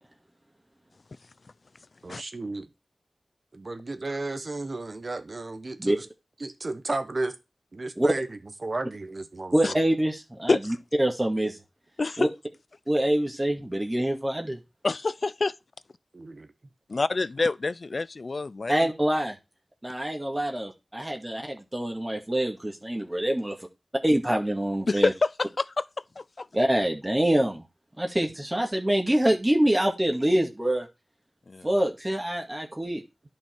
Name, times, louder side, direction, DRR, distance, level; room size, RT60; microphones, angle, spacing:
voice 1, 2.0-2.6 3.5-6.1 6.4-7.3 7.7-9.8 16.1-16.5, right 2 dB, 55° right, 1.3 m, -33 dB
voice 2, 9.5-11.6 12.2-12.3 12.9-14.6 18.7-19.4 19.8-23.6 24.0-25.1 26.5-27.6 28.0-30.9 31.6-33.0, right 1 dB, 20° right, 2.1 m, -25 dB
voice 3, 12.0-12.3 14.8-15.5 16.9-18.9 24.9-25.8 26.2-26.5 31.5-31.7, left 3 dB, 65° left, 0.4 m, -27 dB
10.5 x 5.7 x 4.6 m
wide cardioid pair, 50°, 0 cm